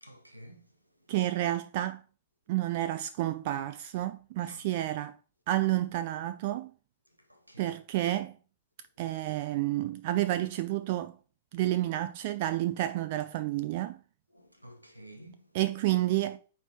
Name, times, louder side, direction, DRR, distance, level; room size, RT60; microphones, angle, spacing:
voice 1, 0.0-0.7 4.5-4.6 7.3-7.8 14.3-15.4, equal, 90° right, 1.2 m, -50 dB
voice 2, 1.1-2.0 2.5-5.2 5.5-6.7 7.6-8.4 9.0-11.2 11.5-14.0 15.5-16.4, right 15 dB, 45° right, 0.5 m, -30 dB
9.2 x 3.6 x 3.0 m
figure-of-eight pair, 105°, 0 cm